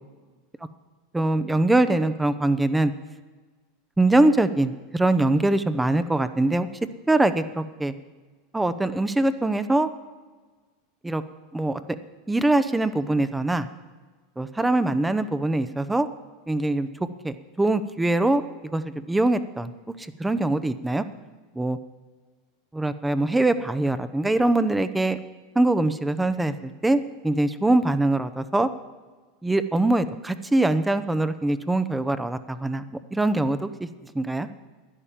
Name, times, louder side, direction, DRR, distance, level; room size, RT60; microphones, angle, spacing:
voice 1, 1.1-2.9 4.0-6.7 7.1-7.9 8.5-9.9 11.0-11.2 11.5-11.8 12.3-13.7 14.4-16.1 16.5-16.9 17.2-18.4 18.7-19.7 20.2-21.0 21.6-21.8 22.7-25.2 25.6-28.7 29.4-32.8 33.1-33.7 34.1-34.5, right 2 dB, 10° right, 12 dB, 0.7 m, -23 dB
11.0 x 9.9 x 7.4 m, 1.4 s
hypercardioid pair, 105°, 0 cm